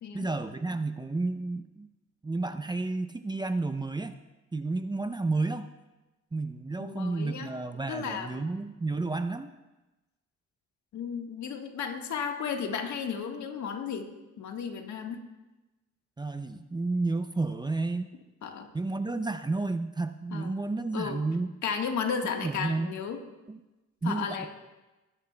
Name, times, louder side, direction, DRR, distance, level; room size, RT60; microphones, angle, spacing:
voice 1, 0.1-1.9 2.2-4.1 4.5-5.7 6.3-9.5 16.2-18.1 18.7-21.5 22.4-22.9 23.5-23.6 24.0-24.5, right 3 dB, 15° right, 9 dB, 0.6 m, -31 dB
voice 2, 6.8-7.5 7.9-8.5 10.9-14.1 14.4-15.2 18.4-18.7 20.3-20.5 20.9-21.2 21.6-23.2 24.0-24.5, left 6 dB, 70° left, 3 dB, 1.5 m, -34 dB
21.0 x 9.9 x 2.3 m, 1.1 s
cardioid pair, 90°, 30 cm